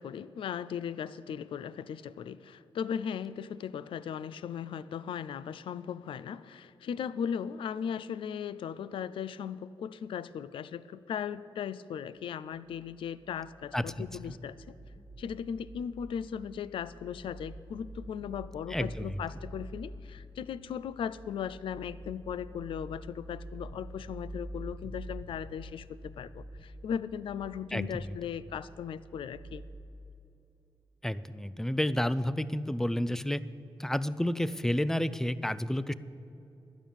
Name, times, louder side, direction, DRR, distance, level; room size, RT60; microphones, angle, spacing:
voice 1, 0.0-14.6 15.2-29.6, left 8 dB, 75° left, 17 dB, 0.4 m, -37 dB
sound 1, 12.7-29.8, right 1 dB, 60° right, 1.8 m, -47 dB
voice 2, 13.7-14.1 18.7-19.2 27.7-28.0 31.0-33.4 33.8-35.9, left 1 dB, 5° left, 16 dB, 0.4 m, -30 dB
12.0 x 9.2 x 7.0 m, 2.8 s
cardioid pair, 95°, 9 cm